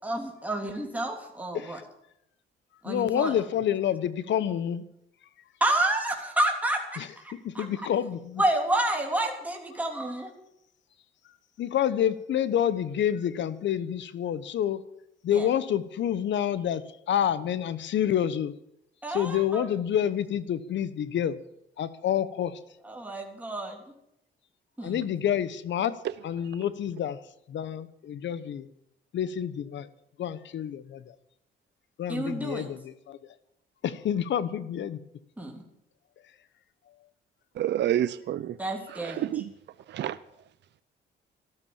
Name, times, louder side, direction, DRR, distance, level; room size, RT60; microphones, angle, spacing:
voice 1, 0.0-1.8 2.8-3.3 5.6-7.6 8.4-10.3 15.3-15.5 19.0-19.7 22.8-23.8 24.8-25.1 32.1-32.7 35.4-35.6 38.6-39.3, right 1 dB, 5° right, 1 dB, 3.3 m, -29 dB
voice 2, 2.8-4.8 7.0-7.1 7.4-8.4 11.6-14.8 15.2-18.5 19.1-21.4 21.8-22.6 24.8-25.9 26.2-27.2 27.5-28.7 29.1-29.9 30.2-31.1 32.0-33.2 33.8-35.0, left 10 dB, 65° left, 15 dB, 1.1 m, -28 dB
voice 3, 37.6-38.6 38.9-39.5 39.9-40.2, right 11 dB, 60° right, 14 dB, 0.6 m, -28 dB
13.0 x 13.0 x 7.2 m, 0.79 s
cardioid pair, 90°, 20 cm